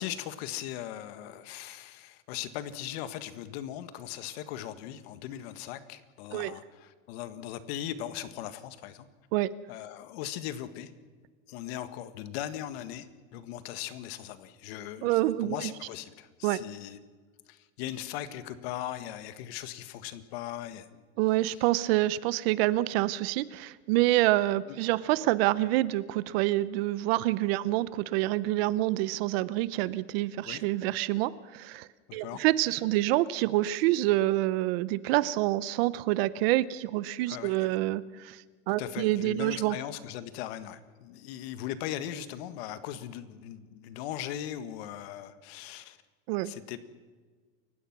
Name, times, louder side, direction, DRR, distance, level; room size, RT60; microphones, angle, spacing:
voice 1, 0.0-9.1 9.7-10.9 11.5-17.0 17.5-21.0 24.7-24.8 30.4-30.6 32.1-32.4 37.3-37.7 38.8-46.0 46.4-46.8, left 11 dB, 60° left, 12 dB, 1.7 m, -39 dB
voice 2, 15.0-15.7 16.4-16.6 21.2-39.8 46.3-46.5, right 16 dB, 55° right, 18 dB, 0.8 m, -27 dB
29.0 x 16.5 x 6.0 m, 1.4 s
supercardioid pair, 170°, 35 cm